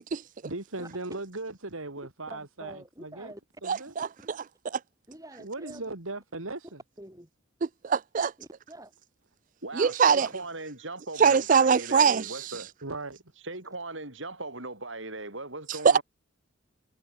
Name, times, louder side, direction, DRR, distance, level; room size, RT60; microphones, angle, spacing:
voice 1, 0.4-3.3 3.6-3.9 5.4-6.8 12.5-13.2, right 2 dB, 85° right, 3.1 m, -38 dB
voice 2, 2.3-3.4 5.1-5.9 6.6-6.7 7.0-7.3 8.4-8.9, right 1 dB, 15° right, 7.0 m, -46 dB
voice 3, 7.8-8.3 9.7-10.3 11.2-12.3 15.8-16.0, right 6 dB, 40° right, 0.4 m, -21 dB
voice 4, 9.6-12.7 13.4-16.0, right 2 dB, 65° right, 8.0 m, -39 dB
head